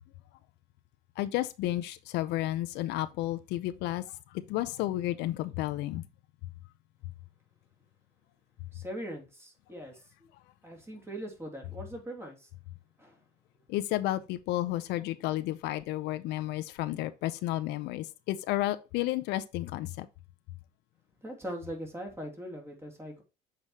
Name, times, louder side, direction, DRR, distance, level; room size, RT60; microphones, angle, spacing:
voice 1, 1.2-4.0 4.3-6.0 13.7-20.1, left 15 dB, 90° left, 0.6 m, -32 dB
voice 2, 8.7-10.0 10.6-12.5 13.0-13.1 21.2-23.2, equal, 15° right, 2.7 m, -41 dB
7.4 x 4.8 x 2.9 m
cardioid pair, 110°, 17 cm